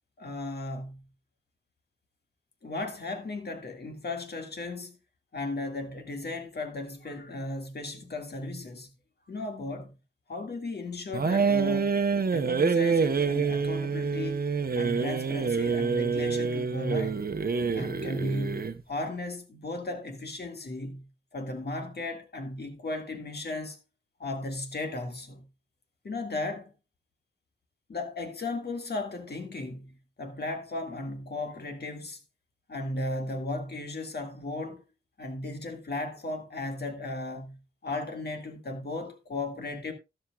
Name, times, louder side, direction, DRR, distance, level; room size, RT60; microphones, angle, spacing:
voice 1, 0.2-1.1 2.6-5.0 5.3-8.9 9.3-9.9 10.3-12.0 12.3-14.4 14.7-17.3 17.7-23.8 24.2-25.5 26.0-26.7 27.9-32.2 32.7-34.8 35.2-39.9, left 2 dB, 75° left, 1.9 m, -35 dB
sound 1, 11.1-18.8, right 5 dB, 60° right, 0.8 m, -27 dB
12.5 x 11.5 x 2.3 m
wide cardioid pair, 85°, 17 cm